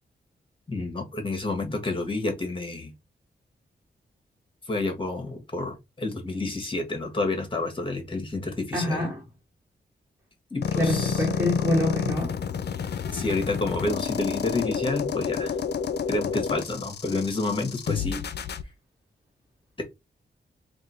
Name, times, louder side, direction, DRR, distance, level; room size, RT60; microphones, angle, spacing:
voice 1, 0.7-2.9 4.7-9.0 10.5-11.3 13.1-15.5 16.1-18.2, left 2 dB, 30° left, 1.5 m, -29 dB
voice 2, 8.7-9.2 10.8-12.4, equal, 15° right, 2.2 m, -26 dB
sound 1, 10.6-18.6, left 7 dB, 65° left, 0.5 m, -29 dB
3.6 x 2.7 x 4.3 m
wide cardioid pair, 105°, 18 cm